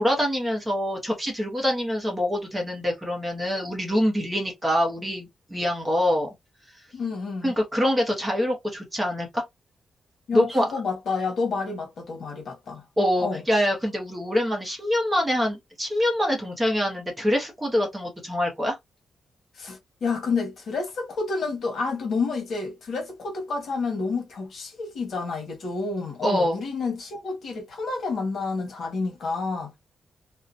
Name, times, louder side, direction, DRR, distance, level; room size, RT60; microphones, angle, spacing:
voice 1, 0.0-6.3 7.4-9.4 10.3-10.7 13.0-18.8 26.2-26.6, equal, 10° right, 0.8 m, -25 dB
voice 2, 6.9-7.5 10.3-12.8 13.2-13.4 19.5-29.7, left 4 dB, 55° left, 1.2 m, -29 dB
2.7 x 2.2 x 2.5 m
wide cardioid pair, 175°, 0 cm